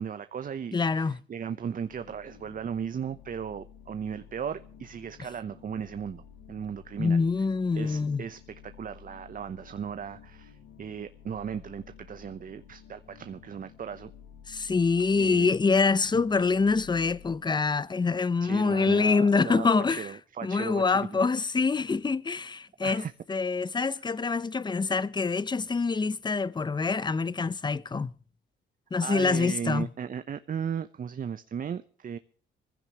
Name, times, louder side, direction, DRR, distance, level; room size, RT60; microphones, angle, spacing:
voice 1, 0.0-7.2 7.8-14.1 15.2-15.5 16.1-16.5 18.4-21.2 22.8-23.1 29.0-32.2, right 7 dB, 45° right, 0.9 m, -36 dB
voice 2, 0.7-1.2 7.0-8.2 14.5-20.1 20.4-28.1 28.9-29.9, left 4 dB, 20° left, 0.7 m, -25 dB
sound 1, 1.9-17.4, left 8 dB, 90° left, 2.7 m, -52 dB
24.0 x 15.5 x 3.0 m
cardioid pair, 90°, 20 cm